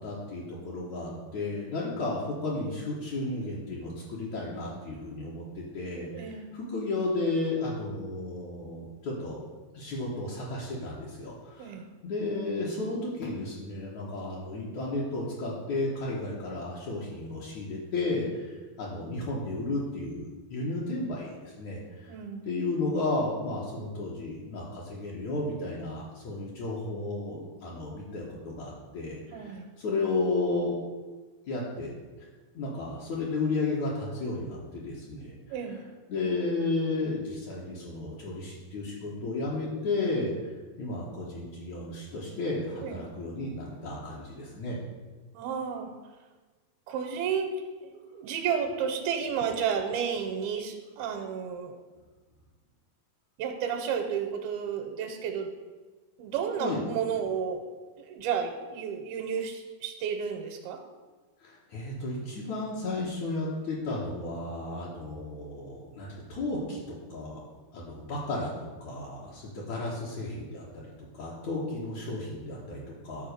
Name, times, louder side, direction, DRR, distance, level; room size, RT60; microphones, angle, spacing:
voice 1, 0.0-9.4 9.7-11.8 12.0-22.1 22.5-30.7 31.5-32.3 32.5-35.6 36.1-40.3 40.8-44.8 56.6-56.8 61.4-67.4 67.7-70.9 71.1-73.3, left 2 dB, 60° left, -6 dB, 2.3 m, -33 dB
voice 2, 6.1-6.5 11.6-11.9 22.1-22.4 29.3-29.7 35.5-35.9 42.8-43.0 45.3-45.9 46.9-47.6 47.8-51.8 53.4-55.5 56.2-57.7 58.0-60.8, right 7 dB, 90° right, 4 dB, 2.6 m, -32 dB
11.5 x 4.2 x 6.5 m, 1.3 s
omnidirectional pair, 4.3 m